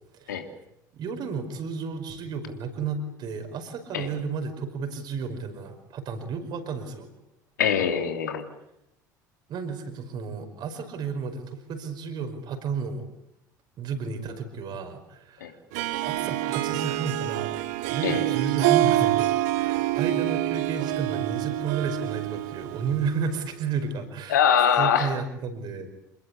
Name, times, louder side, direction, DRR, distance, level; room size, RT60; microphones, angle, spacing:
voice 1, 0.9-7.1 9.5-13.1 13.8-15.6 16.0-17.6 17.9-19.3 19.5-24.4 24.8-25.9, right 5 dB, 45° right, 7 dB, 5.3 m, -32 dB
voice 2, 7.6-8.5 15.4-15.5 18.0-18.2 24.3-25.1, left 8 dB, 70° left, 6 dB, 3.0 m, -22 dB
Harp, 15.7-23.4, right 16 dB, 60° right, 1.7 m, -26 dB
28.0 x 20.5 x 8.6 m, 0.83 s
figure-of-eight pair, 65°, 10 cm